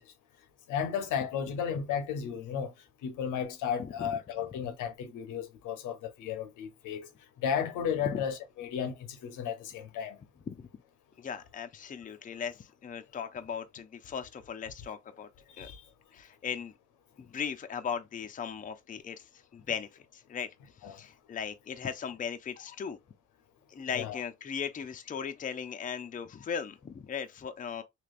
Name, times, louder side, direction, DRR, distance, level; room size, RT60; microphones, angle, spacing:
voice 1, 0.7-2.7 3.0-7.1 7.4-8.9 9.2-10.2 15.6-15.8 20.8-21.0 24.0-24.2, left 8 dB, 90° left, 0.8 m, -34 dB
voice 2, 3.8-4.1 8.1-8.2 10.5-10.7 11.2-15.3 15.6-15.7 16.1-16.7 17.2-19.2 19.5-20.5 20.8-23.0 23.7-27.8, left 7 dB, 25° left, 0.5 m, -38 dB
3.2 x 2.9 x 2.4 m
cardioid pair, 90°, 30 cm